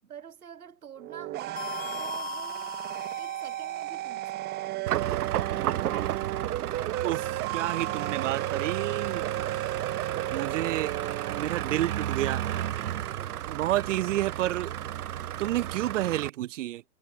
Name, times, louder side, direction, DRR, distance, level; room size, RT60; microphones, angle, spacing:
voice 1, 0.0-1.7 1.9-2.8 3.1-4.8, right 8 dB, 75° right, 6.5 m, -48 dB
sound 1, 1.0-11.4, right 15 dB, 20° right, 1.1 m, -34 dB
sound 2, 1.6-3.9, left 8 dB, 20° left, 4.8 m, -40 dB
sound 3, 4.9-16.3, right 12 dB, 90° right, 0.5 m, -33 dB
voice 2, 7.0-9.3 10.3-10.9 11.4-12.4 13.5-14.7 15.4-16.8, right 14 dB, 55° right, 0.7 m, -30 dB
hypercardioid pair, 125°, 44 cm